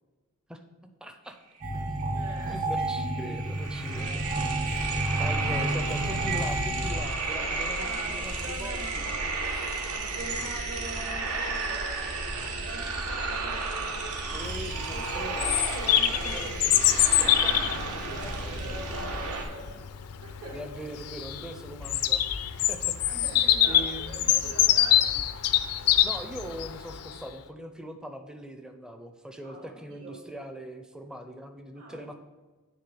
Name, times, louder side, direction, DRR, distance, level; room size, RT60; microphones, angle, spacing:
voice 1, 0.5-1.4 2.5-4.2 5.2-9.5 14.3-15.6 15.8-17.5 18.1-19.0 20.5-22.2 22.7-23.0 23.7-24.3 26.0-32.2, right 1 dB, 5° right, 6 dB, 0.5 m, -41 dB
sound 1, 1.6-7.0, right 1 dB, 45° right, 1.6 m, -30 dB
voice 2, 2.1-2.6 4.0-5.3 5.6-6.2 7.4-9.0 9.9-14.5 14.9-16.8 17.4-19.8 20.2-20.6 23.0-25.1 29.4-30.1 31.7-32.2, right 1 dB, 70° right, -2 dB, 2.6 m, -43 dB
sound 2, 2.4-2.5 2.8-19.4, right 3 dB, 85° right, 1.2 m, -33 dB
Bird vocalization bird call bird song, 14.4-27.2, left 12 dB, 85° left, 0.5 m, -25 dB
9.7 x 3.6 x 6.9 m, 1.3 s
head